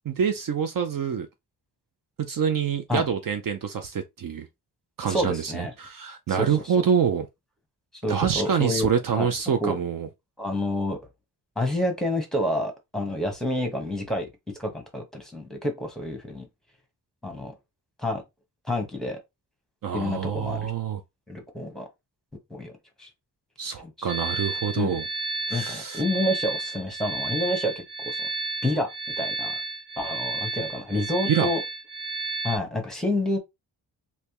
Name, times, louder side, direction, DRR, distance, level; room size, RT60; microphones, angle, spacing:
voice 1, 0.1-1.3 2.2-4.5 5.0-7.3 8.1-10.1 19.8-21.0 23.6-25.0 25.5-26.0 31.3-31.5, right 7 dB, 55° right, 0.6 m, -26 dB
voice 2, 5.1-5.7 6.3-6.5 8.0-8.9 9.2-9.3 9.6-9.8 10.4-11.0 11.6-14.3 14.6-16.5 17.2-17.5 18.0-18.2 18.7-19.2 19.9-20.7 21.3-21.9 22.5-22.7 23.0-23.1 23.8-24.1 24.7-25.0 25.5-28.3 28.6-28.9 29.2-29.5 30.0-31.6 32.4-33.4, left 1 dB, ahead, 1.1 m, -28 dB
sound 1, 24.1-32.6, right 3 dB, 30° right, 1.0 m, -32 dB
3.3 x 2.8 x 2.9 m
wide cardioid pair, 105°, 40 cm